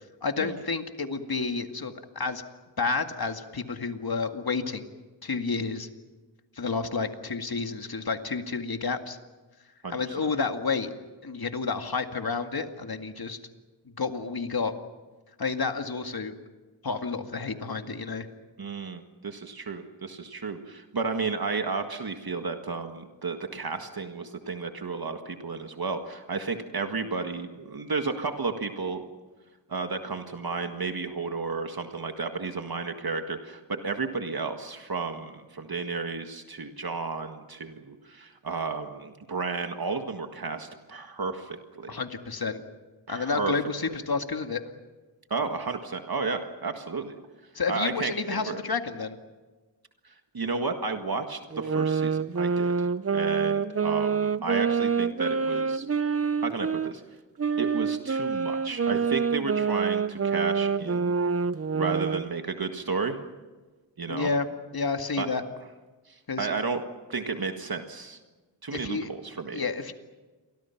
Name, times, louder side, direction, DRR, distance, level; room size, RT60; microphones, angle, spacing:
voice 1, 0.2-2.4 2.8-4.9 5.2-5.9 6.6-9.2 9.9-10.9 11.2-13.4 13.9-14.7 15.4-16.3 16.8-18.3 41.9-42.6 43.1-44.6 47.5-49.2 64.1-64.5 64.7-65.4 66.3-66.5 68.7-69.1 69.5-69.9, left 4 dB, 55° left, 6 dB, 2.1 m, -30 dB
voice 2, 9.8-10.3 18.6-29.0 29.7-41.9 43.1-43.5 45.3-47.1 47.7-48.6 50.0-52.9 53.1-55.9 56.4-57.0 57.6-61.1 61.7-63.2 64.0-64.3 65.2-65.3 66.1-66.8 67.1-68.2 68.6-69.6, right 4 dB, 55° right, 5 dB, 1.8 m, -32 dB
sound 1, 51.5-56.9 57.4-62.3, right 5 dB, 35° right, 0.7 m, -27 dB
30.0 x 24.0 x 5.9 m, 1.3 s
wide cardioid pair, 85°, 44 cm